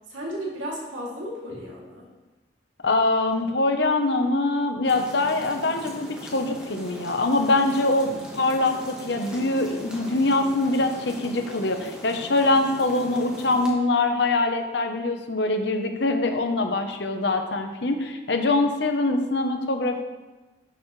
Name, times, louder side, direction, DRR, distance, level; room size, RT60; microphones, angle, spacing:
voice 1, 0.1-2.1, equal, 85° right, -4 dB, 2.8 m, -34 dB
voice 2, 2.8-20.0, left 2 dB, 60° left, 5 dB, 0.9 m, -23 dB
sound 1, 4.8-13.7, equal, 5° right, 1.5 m, -40 dB
12.0 x 7.0 x 3.3 m, 1.2 s
head